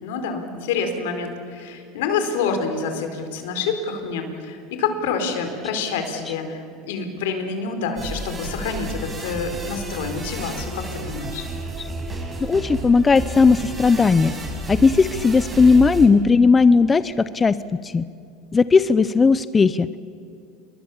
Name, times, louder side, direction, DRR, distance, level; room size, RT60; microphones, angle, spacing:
voice 1, 0.0-11.5, left 5 dB, 80° left, 7 dB, 4.3 m, -27 dB
sound 1, 8.0-16.1, right 2 dB, 20° right, 6.8 m, -31 dB
voice 2, 12.4-14.3 14.7-17.6 17.8-18.0 18.5-19.9, left 4 dB, 20° left, 15 dB, 0.7 m, -16 dB
29.0 x 22.5 x 7.3 m, 2.6 s
supercardioid pair, 105°, 0 cm